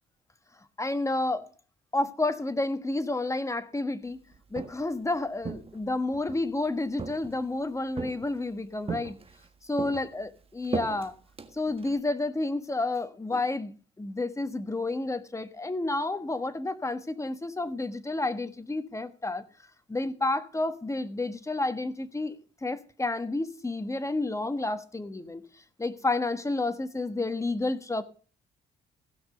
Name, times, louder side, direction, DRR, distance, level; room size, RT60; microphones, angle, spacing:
voice 1, 0.8-1.5 1.9-4.2 4.5-9.2 9.7-11.1 11.6-13.7 14.0-19.4 19.9-22.4 22.6-25.4 25.8-28.0, left 2 dB, 15° left, 1.3 m, -30 dB
Walk footsteps, 4.3-5.0 5.4-6.4 7.0-7.6 8.0-8.5 8.9-9.5 9.8-12.0, right 4 dB, 30° right, 1.6 m, -37 dB
16.0 x 6.0 x 6.7 m
cardioid pair, 90°, 20 cm